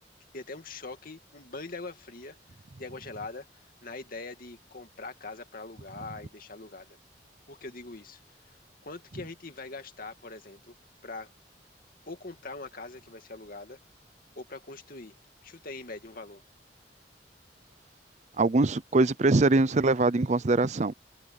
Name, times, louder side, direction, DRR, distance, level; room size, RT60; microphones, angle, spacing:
voice 1, 0.3-2.4 2.8-7.0 7.5-8.2 8.5-10.7 11.0-11.3 12.1-13.8 14.4-15.2 15.4-16.4, left 3 dB, 55° left, 2.5 m, -42 dB
voice 2, 18.4-20.9, right 2 dB, 40° right, 0.6 m, -23 dB
head